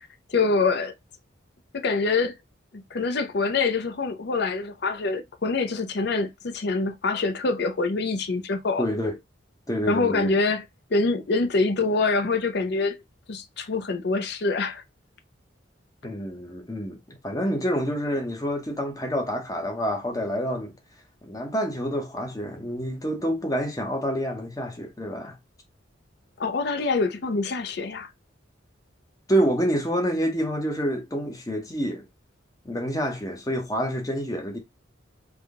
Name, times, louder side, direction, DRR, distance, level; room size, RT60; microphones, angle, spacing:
voice 1, 0.3-0.9 1.7-2.3 2.7-8.9 9.9-10.6 10.9-13.0 13.3-14.8 26.4-28.1, left 3 dB, 55° left, 0.5 m, -25 dB
voice 2, 8.8-9.2 9.7-10.3 16.0-20.7 21.2-25.4 29.3-32.1 32.6-34.6, equal, 15° left, 0.7 m, -27 dB
3.5 x 2.1 x 3.5 m
head